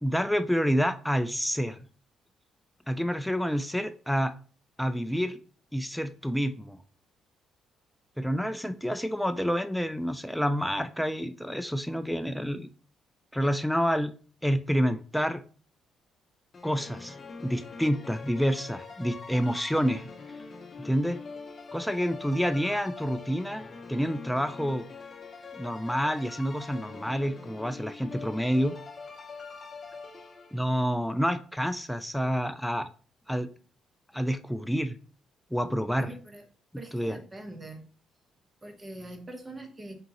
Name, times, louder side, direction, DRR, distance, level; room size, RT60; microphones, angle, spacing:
voice 1, 0.0-1.8 2.9-4.3 4.8-5.4 5.7-6.8 8.2-12.7 13.3-14.1 14.4-15.4 16.6-17.1 17.4-20.1 20.8-21.2 21.7-23.6 23.9-24.8 25.5-28.7 30.5-32.9 33.3-33.5 34.1-34.9 35.5-36.1 36.9-37.2, equal, ahead, 9 dB, 0.4 m, -28 dB
sound 1, 16.5-30.8, left 4 dB, 35° left, 0.7 m, -44 dB
voice 2, 36.0-36.4 36.8-37.8 38.6-39.9, right 2 dB, 25° right, 5 dB, 1.0 m, -43 dB
3.8 x 3.5 x 2.9 m, 0.39 s
supercardioid pair, 70°, 0 cm